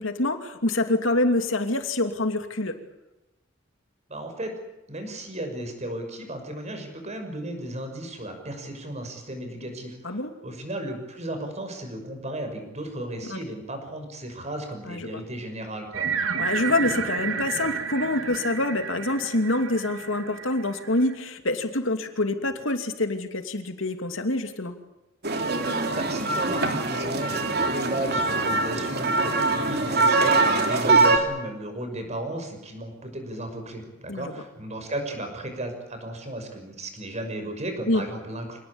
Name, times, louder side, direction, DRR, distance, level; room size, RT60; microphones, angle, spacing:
voice 1, 0.0-2.8 10.0-10.3 13.3-13.4 14.9-15.2 16.4-24.7 34.1-34.3 37.9-38.0, left 2 dB, 70° left, 6 dB, 2.7 m, -26 dB
voice 2, 4.1-4.5 4.9-16.1 25.9-38.6, right 1 dB, 35° right, 5 dB, 6.1 m, -35 dB
sound 1, 15.9-21.1, right 6 dB, 75° right, 2.3 m, -31 dB
sound 2, 25.2-31.2, right 3 dB, 50° right, 3.1 m, -23 dB
26.5 x 19.0 x 8.7 m, 0.98 s
head